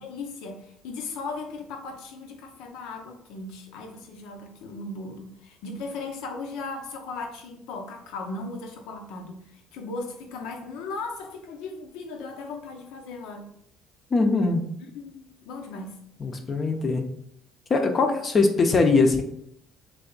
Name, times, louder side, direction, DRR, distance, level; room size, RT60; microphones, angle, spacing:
voice 1, 0.0-13.5 14.9-16.0, left 3 dB, 80° left, 3 dB, 0.8 m, -37 dB
voice 2, 14.1-14.7 16.2-17.0 17.7-19.2, left 3 dB, 35° left, 4 dB, 0.7 m, -21 dB
3.4 x 3.3 x 3.9 m, 0.72 s
cardioid pair, 100°, 0 cm